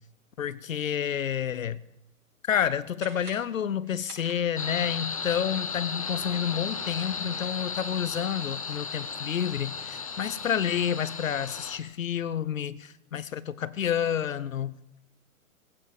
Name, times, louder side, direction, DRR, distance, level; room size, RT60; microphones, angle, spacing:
voice 1, 0.4-1.8 2.4-14.8, left 9 dB, 65° left, 0.8 m, -29 dB
sound 1, 2.9-4.9, right 4 dB, 80° right, 6.0 m, -49 dB
sound 2, 4.5-11.8, left 5 dB, 25° left, 0.7 m, -35 dB
16.0 x 16.0 x 5.2 m
hypercardioid pair, 175°, 43 cm